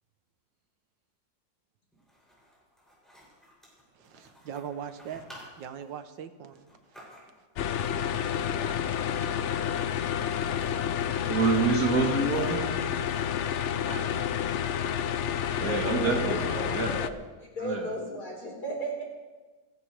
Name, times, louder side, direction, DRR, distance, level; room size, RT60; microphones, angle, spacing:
sound 1, 1.9-7.6 8.6-9.1 9.3-9.4 9.7-10.8 11.2-13.8, equal, ahead, 6.8 m, -53 dB
voice 1, 3.9-5.2 5.6-6.7 7.8-7.9 8.6-9.2 13.9-14.5, right 8 dB, 80° right, 9 dB, 1.6 m, -41 dB
sound 2, 7.6-17.1, left 8 dB, 85° left, 0.6 m, -29 dB
voice 2, 11.3-12.6 15.6-16.9 17.6-17.9, right 4 dB, 50° right, 2 dB, 1.9 m, -27 dB
voice 3, 15.6-19.0, equal, 55° left, -2 dB, 4.9 m, -35 dB
29.5 x 12.5 x 3.3 m, 1.3 s
omnidirectional pair, 2.0 m